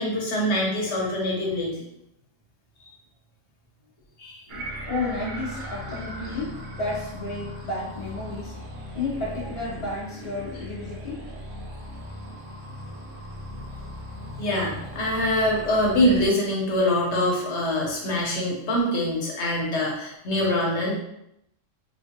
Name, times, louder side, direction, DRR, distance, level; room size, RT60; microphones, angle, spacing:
voice 1, 0.0-1.7 2.9-3.0 4.2-4.4 14.4-21.0, left 1 dB, 65° left, -2 dB, 1.1 m, -24 dB
voice 2, 4.5-8.6 8.9-11.3, left 2 dB, 35° left, -7 dB, 0.8 m, -32 dB
sound 1, 4.5-16.3, equal, 80° right, 1.0 m, -38 dB
3.6 x 2.3 x 2.9 m, 0.80 s
omnidirectional pair, 1.3 m